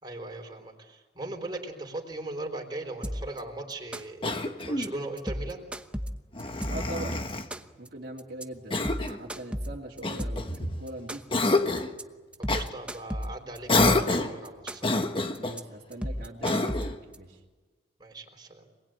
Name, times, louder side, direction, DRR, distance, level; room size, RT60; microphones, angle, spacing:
voice 1, 0.0-5.6 12.4-14.9 18.0-18.7, right 2 dB, 25° right, 2 dB, 4.1 m, -39 dB
sound 1, 3.0-3.4 3.7-4.3 4.6-4.9 5.2-7.0 7.3-7.9 8.2-8.4 8.7-10.6 10.9-11.5 11.8-12.0 12.3-14.1 14.4-15.0 15.3-15.6 15.9-17.2, equal, 5° right, 1.0 m, -34 dB
Cough, 4.2-5.0 6.3-7.5 8.7-9.2 10.0-10.8 11.3-11.9 12.5-12.7 13.7-14.4 14.8-15.6 16.4-17.0, left 2 dB, 30° left, 1.4 m, -27 dB
voice 2, 6.7-7.2 7.8-11.2 15.4-17.4, right 1 dB, 50° right, -5 dB, 2.7 m, -41 dB
26.5 x 20.0 x 9.1 m, 1.3 s
head